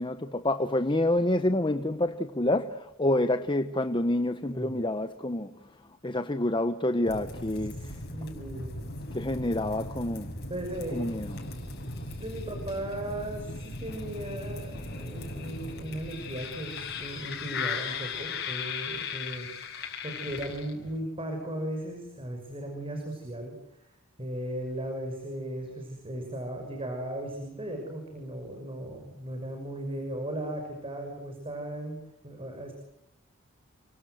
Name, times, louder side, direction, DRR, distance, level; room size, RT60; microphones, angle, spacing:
voice 1, 0.0-5.6 6.0-8.0 9.1-10.3 10.9-11.4, left 1 dB, 25° left, 1.0 m, -28 dB
sound 1, 7.1-21.0, left 3 dB, 55° left, 7.0 m, -37 dB
voice 2, 7.7-8.7 10.5-11.0 12.2-32.0 32.2-32.7, right 1 dB, 25° right, 6.0 m, -37 dB
30.0 x 24.5 x 7.9 m
head